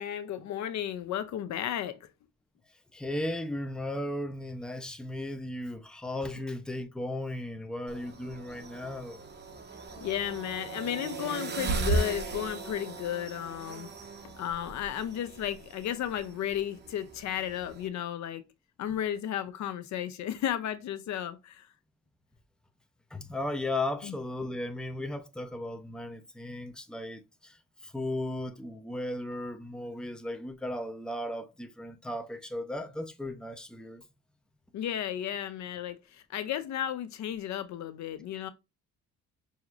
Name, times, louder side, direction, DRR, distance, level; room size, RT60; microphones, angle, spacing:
voice 1, 0.0-2.1 10.0-13.9 14.2-18.4 18.8-21.7 24.0-24.1 34.7-38.5, left 10 dB, 65° left, 0.6 m, -34 dB
voice 2, 2.9-9.2 23.1-34.0, left 1 dB, 5° left, 0.6 m, -36 dB
sound 1, 7.9-17.9, right 3 dB, 35° right, 0.9 m, -37 dB
6.0 x 2.8 x 2.4 m
cardioid pair, 90°, 30 cm